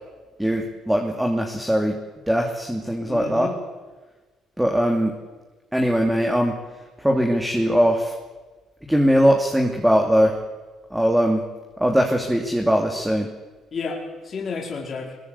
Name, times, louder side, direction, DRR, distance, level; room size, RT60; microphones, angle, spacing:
voice 1, 0.4-2.0 2.3-3.5 4.6-5.1 5.7-6.6 7.0-8.1 8.9-10.4 10.9-11.4 11.8-13.3, equal, 5° right, 2 dB, 2.8 m, -20 dB
voice 2, 3.0-3.6 13.7-15.2, left 4 dB, 45° left, 0 dB, 4.5 m, -31 dB
22.0 x 21.5 x 8.4 m, 1.3 s
supercardioid pair, 80°, 0 cm